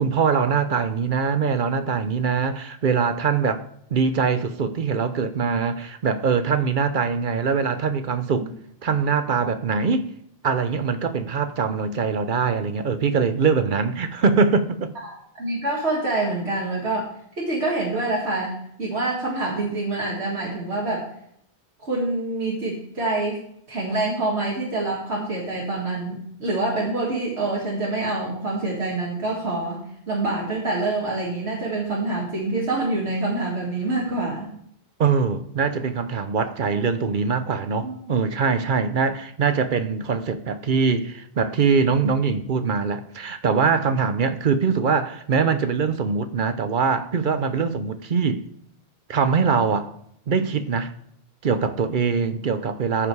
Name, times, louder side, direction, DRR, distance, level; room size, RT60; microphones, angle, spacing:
voice 1, 0.0-3.6 3.9-8.5 8.8-10.1 10.4-14.9 35.0-48.4 49.1-49.9 50.3-50.9 51.4-53.1, right 5 dB, 55° right, 0.8 m, -23 dB
voice 2, 15.0-21.1 21.8-23.4 23.7-34.5 36.7-36.9 37.8-38.0, right 2 dB, 90° right, 2.3 m, -26 dB
14.0 x 5.0 x 4.8 m
omnidirectional pair, 1.1 m